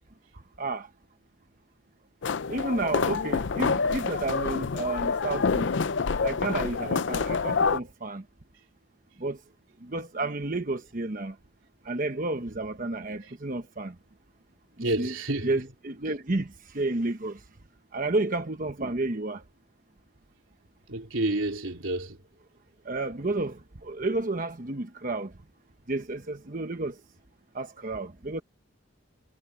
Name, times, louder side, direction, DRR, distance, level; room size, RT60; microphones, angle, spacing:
sound 1, 2.2-7.8, left 5 dB, 65° left, 0.5 m, -27 dB
voice 1, 2.5-5.7 6.2-8.2 9.2-9.4 9.9-11.3 11.9-13.9 15.0-15.1 15.4-16.5 16.7-17.4 17.9-19.4 22.9-25.3 25.9-26.9 27.5-28.4, right 2 dB, 45° right, 1.1 m, -31 dB
voice 2, 14.8-15.6 20.9-22.2, right 2 dB, 85° right, 3.2 m, -29 dB
head